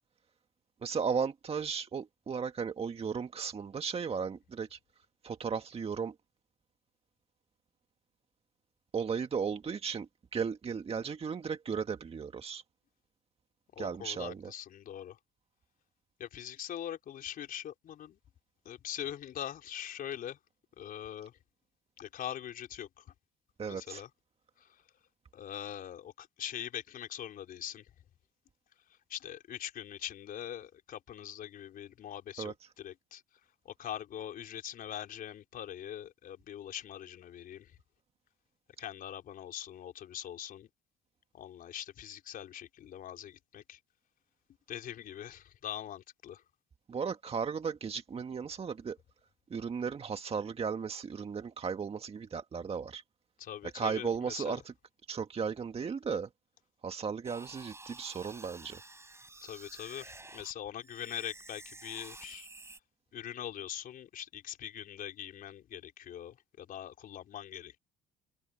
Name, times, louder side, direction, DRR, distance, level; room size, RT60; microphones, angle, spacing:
voice 1, 0.8-4.8 5.2-6.1 8.9-12.6 13.8-14.5 23.6-24.0 32.4-32.5 46.9-49.0 49.5-53.0 53.6-54.6 55.1-56.3 56.8-58.8, right 6 dB, 35° right, 1.6 m, -35 dB
voice 2, 13.7-15.2 16.2-18.2 18.6-20.4 20.8-21.4 22.0-23.1 23.7-24.1 24.6-24.8 25.3-27.9 28.9-33.2 33.6-37.7 38.8-40.7 41.3-43.8 44.7-46.4 53.4-54.6 59.4-62.5 63.1-67.8, left 10 dB, 55° left, 4.4 m, -42 dB
sound 1, 57.2-60.5 60.8-62.8, right 2 dB, 15° right, 5.1 m, -51 dB
hypercardioid pair, 65°, 17 cm